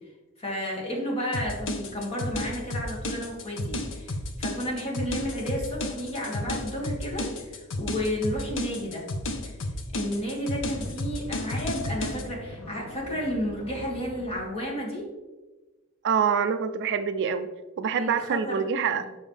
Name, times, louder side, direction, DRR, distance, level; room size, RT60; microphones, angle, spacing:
voice 1, 0.4-9.1 9.4-9.5 9.9-15.1 18.0-19.1, equal, 25° left, -3 dB, 1.9 m, -32 dB
sound 1, 1.3-12.2, left 1 dB, 60° left, 0.8 m, -32 dB
sound 2, 10.3-14.5, equal, 85° left, 1.1 m, -43 dB
voice 2, 16.0-17.5 17.8-19.1, right 7 dB, 55° right, 11 dB, 0.4 m, -25 dB
7.1 x 6.2 x 3.3 m, 1.2 s
head